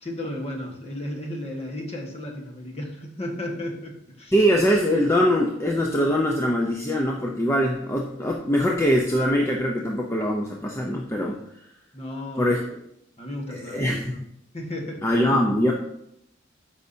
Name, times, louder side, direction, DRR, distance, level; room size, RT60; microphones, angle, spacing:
voice 1, 0.0-4.3 11.9-12.7 13.2-14.2 14.5-15.1, left 1 dB, 35° left, 0 dB, 1.5 m, -34 dB
voice 2, 4.3-11.4 12.4-12.6 13.5-14.2 15.0-15.7, equal, 15° left, -1 dB, 0.7 m, -22 dB
13.0 x 5.7 x 2.8 m, 0.77 s
head